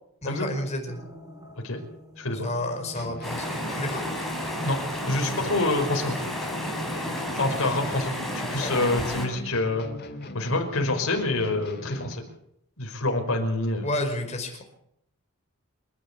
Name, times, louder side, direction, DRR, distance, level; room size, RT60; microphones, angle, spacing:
voice 1, 0.2-1.0 2.4-3.5 3.7-4.0 7.6-7.7 8.6-8.7 13.8-14.6, left 1 dB, 30° left, 3 dB, 5.2 m, -30 dB
sound 1, 0.6-8.3, left 1 dB, 15° right, 3.8 m, -43 dB
voice 2, 2.2-2.5 4.6-4.8 5.0-6.2 7.3-9.9 10.3-12.2 12.8-13.9, left 2 dB, 60° left, 3 dB, 5.1 m, -26 dB
sound 2, 2.9-12.4, left 1 dB, 45° left, 2.6 m, -39 dB
sound 3, 3.2-9.3, left 1 dB, ahead, 5.8 m, -32 dB
28.0 x 12.0 x 8.4 m, 0.75 s
head